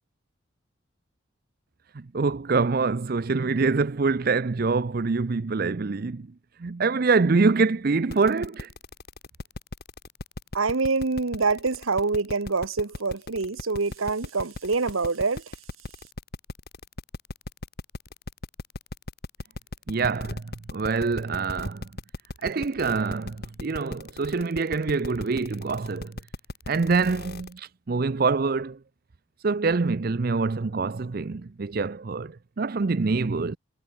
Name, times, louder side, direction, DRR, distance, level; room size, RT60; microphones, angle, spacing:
voice 1, 1.9-6.3 6.6-8.7 19.9-20.4 20.7-21.9 22.4-26.2 26.7-28.8 29.4-33.6, right 4 dB, 45° right, 0.5 m, -25 dB
sound 1, 8.1-27.6, left 2 dB, 50° left, 1.8 m, -37 dB
voice 2, 10.5-15.4, right 4 dB, 85° right, 1.2 m, -26 dB
head